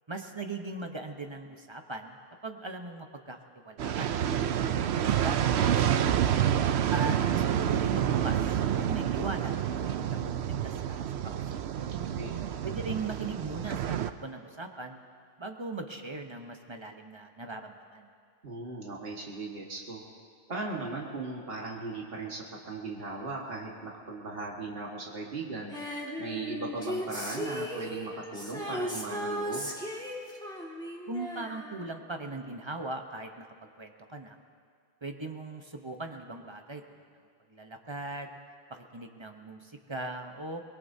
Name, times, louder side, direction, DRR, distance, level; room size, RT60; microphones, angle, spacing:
voice 1, 0.1-2.2 2.4-3.4 3.6-4.7 5.1-5.7 6.0-6.1 6.9-9.5 9.8-11.4 12.6-15.0 15.4-18.1 31.1-33.5 33.8-34.4 35.0-36.8 37.5-38.3 38.7-40.6, right 3 dB, 30° right, 4 dB, 0.9 m, -39 dB
sound 1, 3.8-14.1, right 9 dB, 90° right, 0.9 m, -28 dB
voice 2, 11.9-12.4 18.4-20.0 20.5-25.7 26.2-29.7, right 3 dB, 65° right, -2 dB, 1.9 m, -38 dB
Female singing, 25.7-32.3 32.6-32.7, equal, 5° left, 1.9 m, -37 dB
24.0 x 21.0 x 2.7 m, 2.2 s
omnidirectional pair, 1.1 m